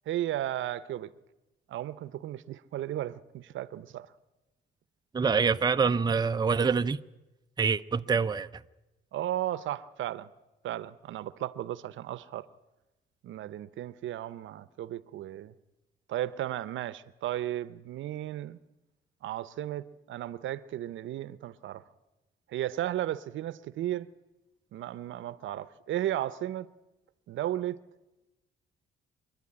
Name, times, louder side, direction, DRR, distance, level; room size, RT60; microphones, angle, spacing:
voice 1, 0.1-1.1 1.7-4.1 9.1-10.3 10.6-12.5 13.2-15.5 16.1-18.6 19.2-21.8 22.5-24.1 24.7-26.7 27.3-27.8, right 13 dB, 75° right, 0.8 m, -34 dB
voice 2, 5.1-7.0 7.6-8.5, right 5 dB, 20° right, 0.6 m, -25 dB
26.5 x 11.0 x 9.9 m
cardioid pair, 90°, 20 cm